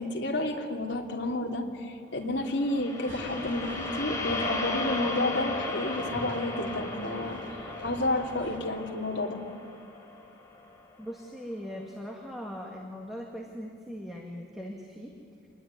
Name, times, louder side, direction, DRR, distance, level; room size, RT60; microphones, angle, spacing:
voice 1, 0.0-7.4 7.8-9.4, left 1 dB, 60° left, 1 dB, 2.9 m, -30 dB
sound 1, 2.4-10.8, left 3 dB, 15° left, 3.4 m, -36 dB
sound 2, 3.1-8.6, equal, 60° right, 3.8 m, -43 dB
voice 2, 11.0-15.1, equal, ahead, -1 dB, 2.0 m, -40 dB
26.5 x 20.5 x 9.7 m, 2.6 s
head